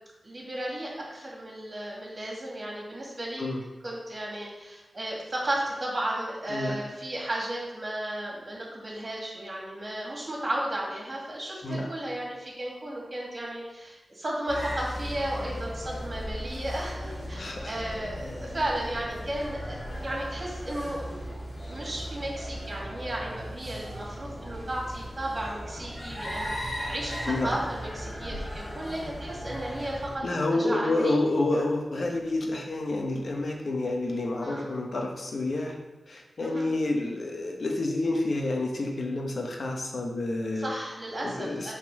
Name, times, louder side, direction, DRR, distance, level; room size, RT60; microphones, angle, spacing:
voice 1, 0.2-3.5 3.8-31.1 34.4-34.7 36.4-36.7 40.5-41.7, right 1 dB, 40° right, -3 dB, 2.3 m, -34 dB
voice 2, 6.5-6.8 11.6-11.9 17.3-17.8 24.4-24.5 27.3-27.6 30.2-35.8 36.1-40.7 41.2-41.7, left 2 dB, 65° left, 1 dB, 1.1 m, -29 dB
sound 1, 14.5-30.2, equal, 45° left, 2.5 m, -37 dB
6.0 x 4.1 x 6.1 m, 1.1 s
wide cardioid pair, 70°, 0 cm